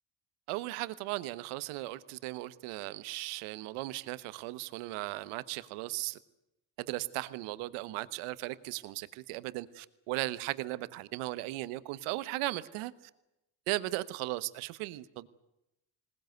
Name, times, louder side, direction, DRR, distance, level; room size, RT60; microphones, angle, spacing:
voice 1, 0.5-6.2 6.8-12.9 13.7-15.3, right 19 dB, 85° right, 16 dB, 1.3 m, -37 dB
20.5 x 19.0 x 9.3 m, 0.89 s
supercardioid pair, 70°, 49 cm